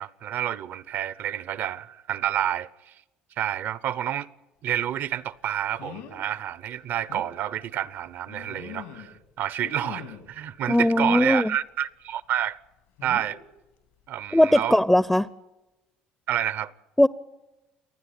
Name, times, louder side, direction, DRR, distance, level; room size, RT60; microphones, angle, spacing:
voice 1, 0.0-2.9 3.4-4.3 4.6-12.6 13.0-13.4 14.1-14.8 16.3-16.7, right 11 dB, 60° right, 0.9 m, -29 dB
sound 1, 4.8-5.0 5.8-6.2 6.6-6.7 7.1-7.3 8.3-9.2 9.6-10.3 11.0-11.4 13.0-13.4 14.6-14.8 15.1-15.2, left 9 dB, 85° left, 3.3 m, -42 dB
voice 2, 10.7-11.5 14.3-15.3 17.0-17.1, left 1 dB, 5° left, 0.6 m, -19 dB
28.5 x 9.9 x 9.8 m
supercardioid pair, 80°, 4 cm